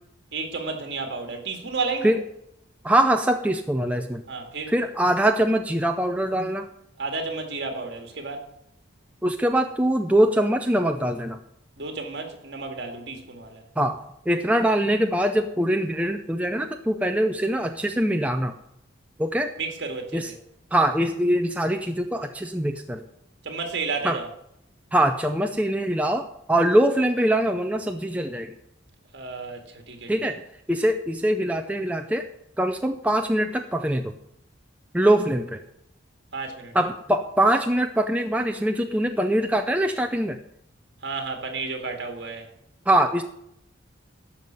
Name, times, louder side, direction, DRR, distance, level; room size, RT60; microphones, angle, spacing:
voice 1, 0.3-2.1 4.3-4.7 7.0-8.5 11.8-13.6 19.6-20.4 23.4-24.3 29.1-30.1 36.3-36.8 41.0-42.5, right 4 dB, 55° right, 2.1 m, -32 dB
voice 2, 2.8-4.2 4.7-6.7 9.2-11.4 13.8-14.0 14.3-18.5 19.2-19.5 20.1-20.3 20.7-23.1 24.0-24.2 24.9-28.5 30.1-30.4 30.7-32.3 32.6-34.1 34.9-35.6 36.7-40.4 42.9-43.2, right 1 dB, 5° right, 0.5 m, -23 dB
13.0 x 5.7 x 7.6 m
head